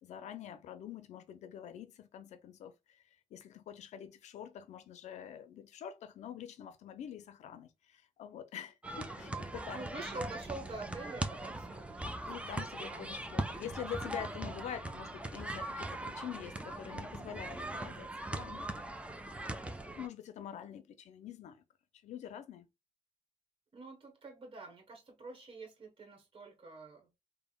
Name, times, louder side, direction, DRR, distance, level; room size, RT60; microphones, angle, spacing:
voice 1, 0.0-3.0 3.3-9.8 12.3-18.7 18.9-19.0 19.8-21.6 22.0-22.7, left 9 dB, 75° left, 0.5 m, -46 dB
sound 1, 8.8-20.1, right 1 dB, 10° right, 0.5 m, -40 dB
voice 2, 9.7-13.1 23.7-27.1, right 3 dB, 45° right, 1.1 m, -47 dB
3.4 x 2.1 x 2.2 m
supercardioid pair, 60°, 12 cm